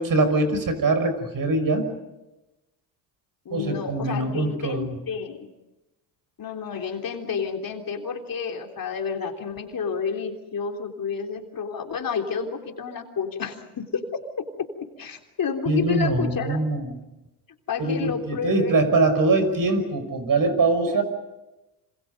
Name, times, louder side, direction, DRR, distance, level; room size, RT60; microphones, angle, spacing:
voice 1, 0.0-1.9 3.5-5.0 15.7-16.9 17.8-21.0, right 2 dB, 45° right, 9 dB, 5.8 m, -23 dB
voice 2, 3.5-5.5 6.4-14.1 14.6-14.7 15.0-16.6 17.7-18.8 20.9-21.0, left 6 dB, 45° left, 4 dB, 3.5 m, -30 dB
27.0 x 26.5 x 5.4 m, 1.0 s
supercardioid pair, 70°, 48 cm